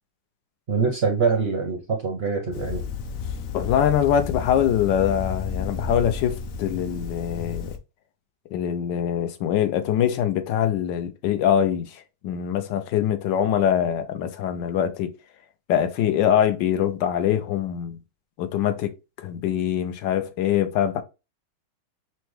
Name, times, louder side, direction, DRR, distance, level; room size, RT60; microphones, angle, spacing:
voice 1, 0.7-2.8, right 5 dB, 55° right, 0.7 m, -24 dB
sound 1, 2.5-7.8, left 6 dB, 70° left, 0.8 m, -32 dB
voice 2, 3.5-7.7 8.5-15.1 15.7-18.0 18.4-21.0, left 9 dB, 85° left, 1.3 m, -23 dB
5.8 x 2.2 x 3.1 m
omnidirectional pair, 1.9 m